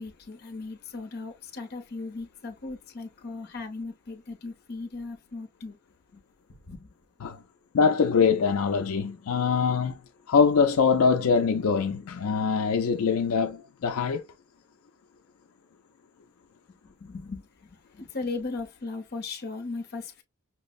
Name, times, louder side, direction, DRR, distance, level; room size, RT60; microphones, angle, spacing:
voice 1, 0.0-5.8 6.1-6.2 6.5-6.9 16.8-20.2, left 3 dB, 45° left, 0.7 m, -37 dB
voice 2, 7.7-10.0 10.3-14.3, left 5 dB, 75° left, 0.4 m, -23 dB
5.8 x 2.0 x 2.3 m
head